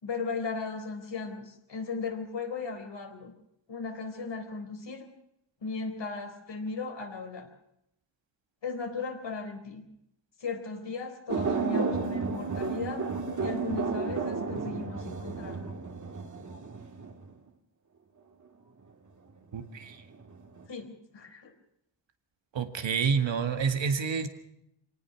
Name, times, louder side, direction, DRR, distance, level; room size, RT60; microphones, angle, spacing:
voice 1, 0.0-3.3 3.7-5.1 5.6-7.5 8.6-9.8 10.4-13.1 13.4-15.7 20.7-21.5, left 4 dB, 75° left, 4 dB, 4.1 m, -36 dB
sound 1, 11.3-17.3 20.1-20.6, right 4 dB, 40° right, 2.1 m, -32 dB
voice 2, 19.5-20.0 22.5-24.3, right 6 dB, 85° right, 6 dB, 2.0 m, -28 dB
25.0 x 18.5 x 6.0 m, 0.80 s
cardioid pair, 70°, 44 cm